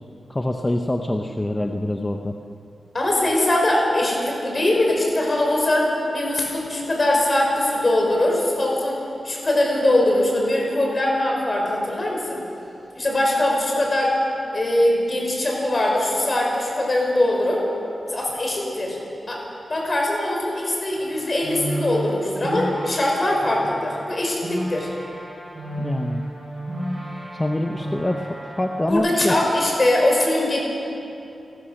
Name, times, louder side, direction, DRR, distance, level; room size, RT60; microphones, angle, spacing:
voice 1, 0.3-2.3 25.8-26.2 27.0-27.1 27.3-29.3, left 1 dB, 15° left, 4 dB, 0.8 m, -25 dB
voice 2, 2.9-9.0 9.2-12.4 12.9-14.2 14.5-17.7 18.0-19.0 19.3-19.4 19.7-24.9 28.9-30.6, left 1 dB, 30° left, -1 dB, 5.2 m, -21 dB
sound 1, 20.9-28.9, right 1 dB, 35° right, 5.8 m, -32 dB
29.5 x 14.0 x 6.5 m, 2.8 s
wide cardioid pair, 145°, 0 cm